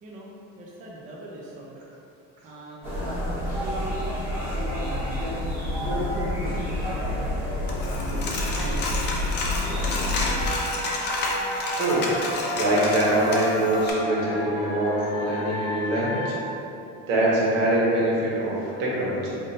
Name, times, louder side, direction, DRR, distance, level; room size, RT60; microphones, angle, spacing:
voice 1, 0.6-1.8 2.4-5.4 5.9-7.4 8.2-9.0 9.4-10.5, right 2 dB, 25° right, -4 dB, 0.4 m, -43 dB
sound 1, 2.8-10.5, left 1 dB, 5° right, 1.0 m, -28 dB
Coin (dropping), 7.7-13.9, left 2 dB, 35° left, 0.5 m, -30 dB
sound 2, 10.1-16.4, left 1 dB, 75° left, 0.7 m, -32 dB
voice 2, 11.7-12.1 12.5-16.4 17.1-19.4, right 1 dB, 85° right, -6 dB, 1.3 m, -24 dB
3.5 x 2.6 x 4.0 m, 2.8 s
cardioid pair, 155°, 31 cm